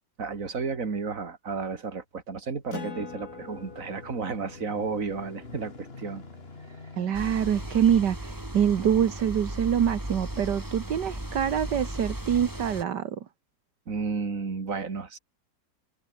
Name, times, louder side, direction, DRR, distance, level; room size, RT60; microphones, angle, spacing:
voice 1, 0.2-6.2 13.9-15.2, right 5 dB, 50° right, 2.8 m, -32 dB
sound 1, 2.5-11.2 11.8-11.9, left 3 dB, 35° left, 2.7 m, -48 dB
Acoustic guitar, 2.7-7.7, left 4 dB, 60° left, 3.5 m, -45 dB
voice 2, 7.0-13.2, right 9 dB, 80° right, 1.9 m, -25 dB
sound 2, 7.1-12.8, right 1 dB, 10° right, 3.2 m, -36 dB
omnidirectional pair, 1.8 m